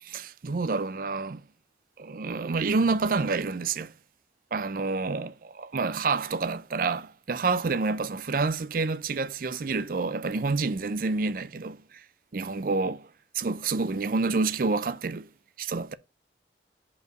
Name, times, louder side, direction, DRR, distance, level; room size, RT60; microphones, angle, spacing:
voice 1, 0.0-1.4 2.0-3.9 4.5-12.0 12.3-13.1 13.3-15.3 15.6-15.9, right 4 dB, 50° right, 0.5 m, -28 dB
5.3 x 4.7 x 6.0 m
head